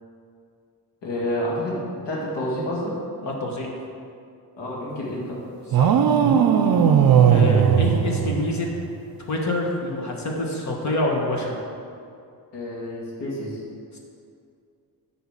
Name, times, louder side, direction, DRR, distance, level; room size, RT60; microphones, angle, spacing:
voice 1, 1.0-2.9 4.6-5.4 12.5-13.6, left 1 dB, 85° left, -6 dB, 2.2 m, -29 dB
voice 2, 3.2-3.7 5.8-6.0 7.2-8.7 9.3-11.6 13.9-14.0, left 1 dB, 40° left, -1 dB, 1.4 m, -26 dB
sound 1, 5.7-8.8, right 8 dB, 60° right, 0.6 m, -18 dB
10.0 x 3.9 x 7.3 m, 2.4 s
wide cardioid pair, 170°, 42 cm